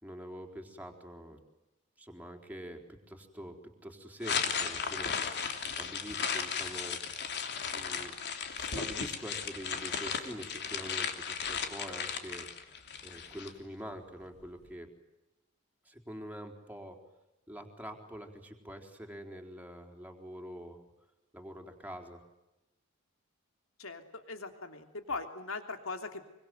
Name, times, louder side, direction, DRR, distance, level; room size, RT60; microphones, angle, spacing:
voice 1, 0.0-1.4 2.0-5.4 5.8-7.0 7.7-8.1 8.6-12.7 13.0-14.9 15.8-17.0 17.5-20.9 21.3-22.2, equal, 10° right, 4 dB, 4.1 m, -45 dB
sound 1, 4.2-13.5, left 6 dB, 55° left, 3.1 m, -35 dB
voice 2, 23.8-26.2, left 3 dB, 70° left, 6 dB, 3.2 m, -40 dB
25.5 x 25.0 x 9.3 m, 0.97 s
head